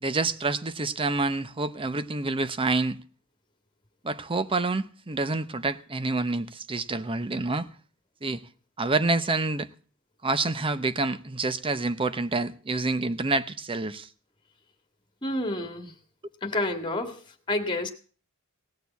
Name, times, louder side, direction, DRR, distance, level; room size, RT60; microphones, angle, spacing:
voice 1, 0.0-3.0 4.0-7.7 8.2-8.4 8.8-9.7 10.2-14.1, right 3 dB, 25° right, 0.7 m, -27 dB
voice 2, 15.2-15.9 16.4-17.2 17.5-17.9, left 2 dB, 20° left, 1.7 m, -29 dB
17.5 x 6.6 x 8.2 m
head